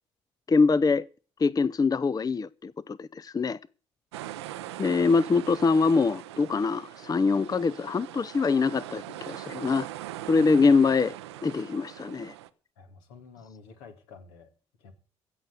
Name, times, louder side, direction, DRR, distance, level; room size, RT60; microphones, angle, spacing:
voice 1, 0.5-1.0 1.4-3.6 4.8-9.9 10.3-11.2 11.4-12.3, left 4 dB, 25° left, 0.5 m, -24 dB
sound 1, 4.1-12.5, right 14 dB, 85° right, 0.7 m, -41 dB
voice 2, 12.8-14.5 14.8-14.9, left 5 dB, 80° left, 2.4 m, -50 dB
16.0 x 6.8 x 8.1 m
hypercardioid pair, 50°, 14 cm